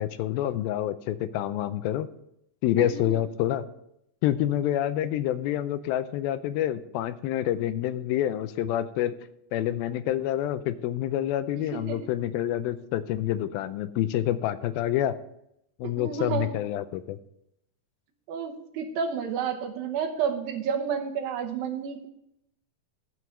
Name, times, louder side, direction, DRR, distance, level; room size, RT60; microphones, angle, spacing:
voice 1, 0.0-2.1 2.6-3.6 4.2-9.1 9.5-15.1 15.8-17.2, left 12 dB, 85° left, 12 dB, 2.4 m, -27 dB
voice 2, 2.8-3.2 11.7-12.0 15.9-16.6 18.3-22.1, right 7 dB, 75° right, 4 dB, 2.8 m, -31 dB
13.0 x 4.7 x 6.6 m, 0.77 s
omnidirectional pair, 4.3 m